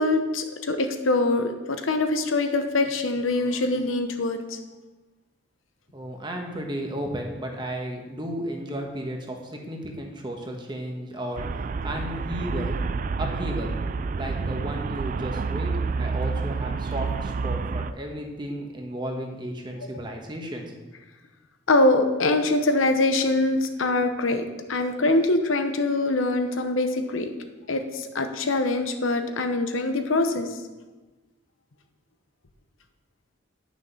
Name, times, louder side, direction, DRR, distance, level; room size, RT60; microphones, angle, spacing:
voice 1, 0.0-4.6 21.7-27.3 27.7-30.5, left 2 dB, 90° left, 7 dB, 0.9 m, -24 dB
voice 2, 5.9-12.8 13.2-13.8 14.2-15.7 16.0-20.7, equal, 25° right, 2 dB, 1.3 m, -33 dB
Traffic noise roadway noise, 11.4-17.9, right 4 dB, 40° right, 0.3 m, -29 dB
10.0 x 6.3 x 5.5 m, 1.2 s
head